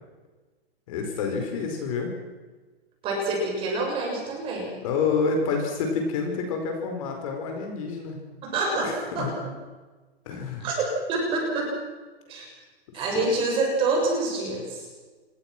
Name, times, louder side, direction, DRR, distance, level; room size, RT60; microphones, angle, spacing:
voice 1, 0.9-2.1 4.8-8.2 8.8-9.3 10.2-10.7 12.9-13.3, left 5 dB, 30° left, 3 dB, 4.9 m, -28 dB
voice 2, 3.0-4.8 8.4-9.3 10.6-11.7 12.3-12.5 12.9-14.9, right 2 dB, 15° right, 0 dB, 7.1 m, -27 dB
27.5 x 23.0 x 6.2 m, 1.3 s
hypercardioid pair, 175°, 32 cm